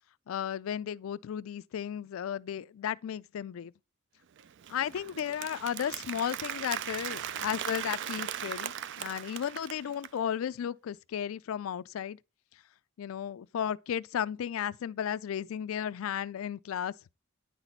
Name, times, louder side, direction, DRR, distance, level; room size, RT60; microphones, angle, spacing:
voice 1, 0.3-3.7 4.7-12.2 13.0-16.9, left 9 dB, 75° left, 0.3 m, -34 dB
Applause, 4.4-10.2, right 10 dB, 60° right, 0.4 m, -38 dB
9.7 x 4.1 x 4.4 m
head